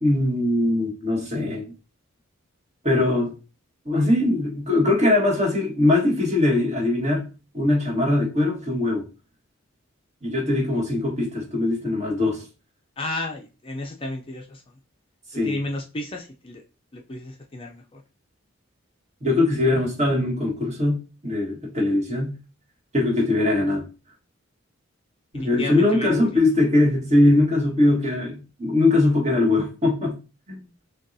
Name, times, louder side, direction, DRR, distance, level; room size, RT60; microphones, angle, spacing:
voice 1, 0.0-1.7 2.8-3.3 3.8-7.3 7.5-9.0 10.2-12.4 15.3-15.6 19.2-21.0 21.2-22.3 22.9-23.9 25.3-30.2 30.5-30.6, left 2 dB, 35° right, 1.4 m, -21 dB
voice 2, 13.0-14.6 15.4-16.6 16.9-18.0 25.3-26.4, left 1 dB, 25° left, 0.4 m, -32 dB
6.3 x 2.3 x 2.6 m
head